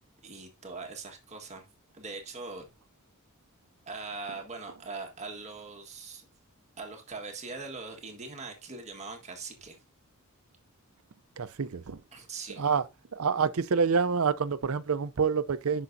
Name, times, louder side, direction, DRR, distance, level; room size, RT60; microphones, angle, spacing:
voice 1, 0.2-1.7 1.9-2.7 3.9-6.3 6.8-9.8 12.1-12.6, right 4 dB, 30° right, 1.6 m, -41 dB
voice 2, 11.4-12.0 12.6-12.8 13.1-15.8, right 5 dB, 70° right, 0.6 m, -27 dB
9.9 x 6.0 x 2.7 m
head